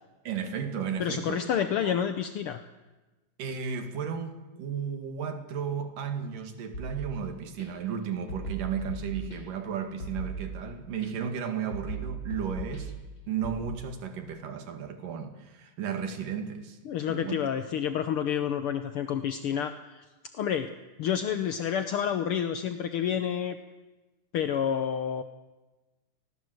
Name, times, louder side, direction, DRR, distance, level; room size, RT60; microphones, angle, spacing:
voice 1, 0.3-1.5 1.8-2.0 3.4-12.9 13.3-16.8 17.1-17.4, right 7 dB, 85° right, 3.9 m, -34 dB
voice 2, 1.0-2.6 16.8-20.0 20.4-20.7 21.0-23.6 24.3-25.2, left 8 dB, 70° left, 1.3 m, -29 dB
sound 1, 6.7-7.6 8.3-9.6 10.0-11.1 11.7-13.6, right 3 dB, 35° left, 7.2 m, -38 dB
28.0 x 20.0 x 7.9 m
omnidirectional pair, 3.7 m